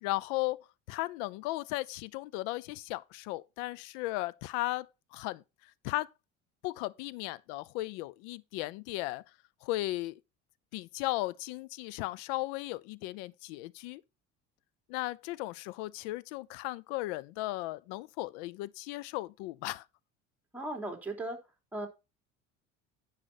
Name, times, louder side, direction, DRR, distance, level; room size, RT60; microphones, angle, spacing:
voice 1, 0.0-4.9 5.1-5.4 5.8-6.1 6.6-9.2 9.6-10.2 10.7-14.0 14.9-19.8, left 18 dB, 80° left, 0.7 m, -36 dB
voice 2, 20.5-21.4 21.7-21.9, right 2 dB, 5° right, 3.2 m, -36 dB
10.0 x 5.9 x 4.2 m
supercardioid pair, 80°, 35 cm